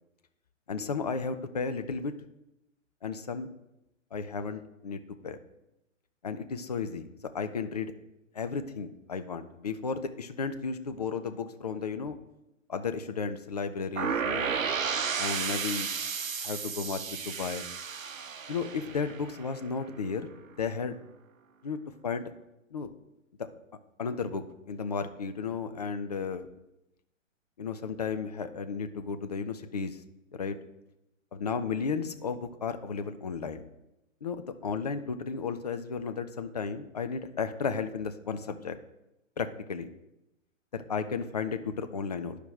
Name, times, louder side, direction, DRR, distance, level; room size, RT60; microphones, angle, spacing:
voice 1, 0.7-2.1 3.0-3.5 4.1-5.4 6.2-7.1 7.3-7.9 8.3-12.2 12.7-14.5 15.2-15.9 16.4-17.6 18.5-20.3 20.6-21.0 21.6-22.3 22.7-22.9 23.4-23.5 24.0-26.5 27.6-30.0 30.3-30.6 31.3-33.6 34.2-38.8 39.4-39.9 40.7-42.4, left 5 dB, 35° left, 9 dB, 0.4 m, -34 dB
sound 1, 14.0-19.8, right 6 dB, 90° right, 0.5 m, -33 dB
10.5 x 4.9 x 3.3 m, 0.91 s
figure-of-eight pair, 125°, 39 cm